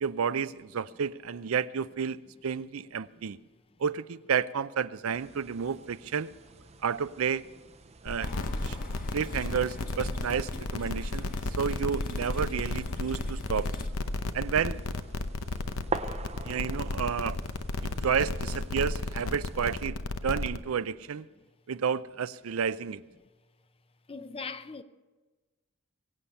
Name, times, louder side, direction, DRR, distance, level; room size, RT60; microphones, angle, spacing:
voice 1, 0.0-3.4 3.8-6.3 6.8-7.4 8.0-8.3 8.6-8.8 9.1-11.3 11.6-13.7 14.3-14.8 16.5-17.4 17.8-20.0 20.2-21.2 21.7-23.0, right 7 dB, 75° right, 0.5 m, -31 dB
sound 1, 5.1-19.8, right 4 dB, 30° right, 0.6 m, -45 dB
sound 2, 8.1-20.6, left 2 dB, 80° left, 0.8 m, -33 dB
sound 3, 8.2-13.9, left 1 dB, 40° left, 1.5 m, -45 dB
voice 2, 24.1-24.8, left 4 dB, 25° left, 0.6 m, -39 dB
22.5 x 8.5 x 5.5 m
head